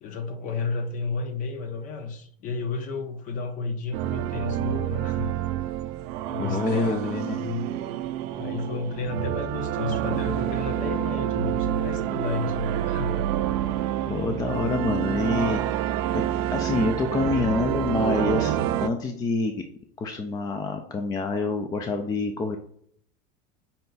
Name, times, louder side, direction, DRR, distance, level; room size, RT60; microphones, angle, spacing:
voice 1, 0.0-5.4 6.3-7.6 8.4-13.3, left 4 dB, 40° left, 7 dB, 0.7 m, -32 dB
sound 1, 3.9-18.9, right 12 dB, 65° right, 0.4 m, -28 dB
voice 2, 6.4-7.4 14.1-15.9 16.1-16.2 16.5-19.5 20.0-22.6, left 3 dB, 20° left, 5 dB, 0.4 m, -27 dB
5.5 x 2.2 x 3.9 m, 0.64 s
supercardioid pair, 130°, 20 cm